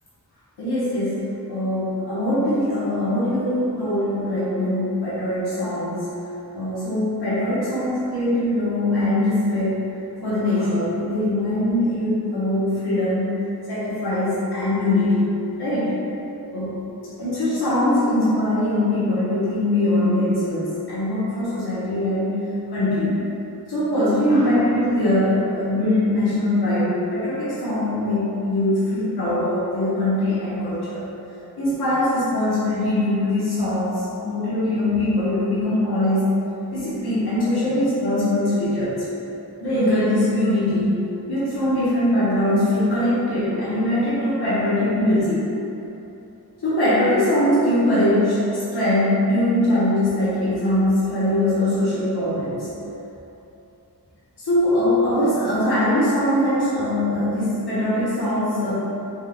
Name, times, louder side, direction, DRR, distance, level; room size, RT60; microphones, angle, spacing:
voice 1, 0.6-6.1 6.5-9.8 10.2-13.4 13.7-15.3 15.6-16.0 16.5-16.8 17.2-22.5 22.7-23.2 23.7-31.1 31.6-36.4 36.7-39.1 39.6-45.4 46.6-52.7 54.4-58.7, left 1 dB, 85° left, -12 dB, 1.1 m, -22 dB
4.4 x 3.6 x 2.3 m, 2.9 s
cardioid pair, 55°, 38 cm